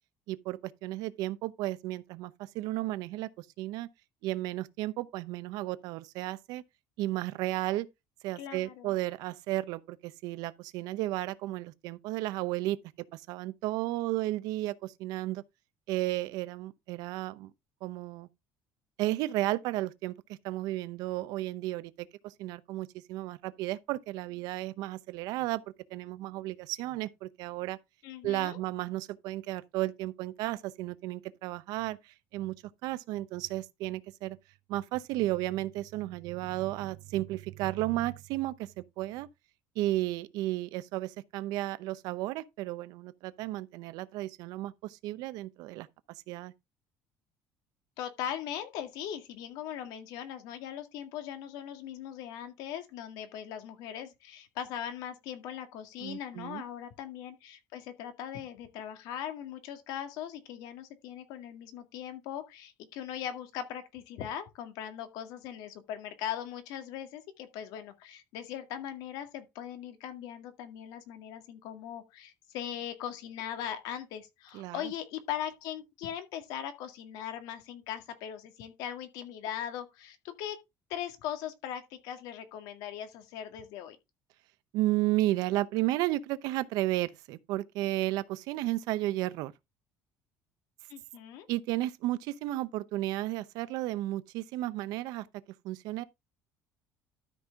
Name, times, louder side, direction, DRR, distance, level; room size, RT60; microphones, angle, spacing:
voice 1, 0.3-3.9 4.2-6.6 7.0-7.9 8.2-12.8 13.1-15.4 15.9-17.5 17.8-18.3 19.0-25.6 25.9-27.8 28.2-32.6 32.8-34.4 34.7-38.7 39.0-39.3 39.8-45.9 46.3-46.5 56.0-56.6 74.5-74.8 84.7-89.5 91.5-95.3 95.6-96.0, right 16 dB, 75° right, 0.8 m, -33 dB
voice 2, 8.4-8.9 28.0-28.6 48.0-80.6 80.9-84.0 90.9-91.5, left 10 dB, 80° left, 2.0 m, -40 dB
12.5 x 5.5 x 3.6 m
cardioid pair, 165°, 7 cm